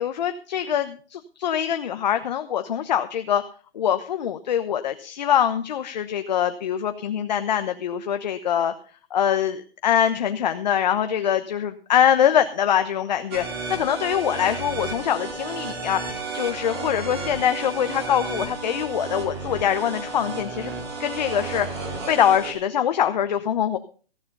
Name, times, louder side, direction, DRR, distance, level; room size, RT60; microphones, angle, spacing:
voice 1, 0.0-3.4 3.7-8.7 9.1-20.7 21.0-23.8, left 9 dB, 50° left, 9 dB, 1.0 m, -23 dB
sound 1, 13.3-22.5, right 4 dB, 25° right, 3.0 m, -33 dB
15.0 x 9.5 x 5.3 m, 0.40 s
hypercardioid pair, 170°, 29 cm